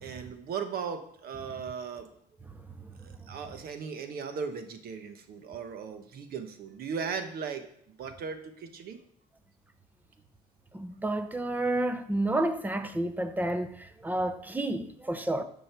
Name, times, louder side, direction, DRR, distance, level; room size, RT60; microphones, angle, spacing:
voice 1, 0.0-2.1 3.0-7.6 8.0-9.0, right 6 dB, 65° right, 1.2 m, -37 dB
voice 2, 10.7-15.4, right 1 dB, 10° right, 0.8 m, -30 dB
12.5 x 5.4 x 4.5 m
cardioid pair, 110°, 17 cm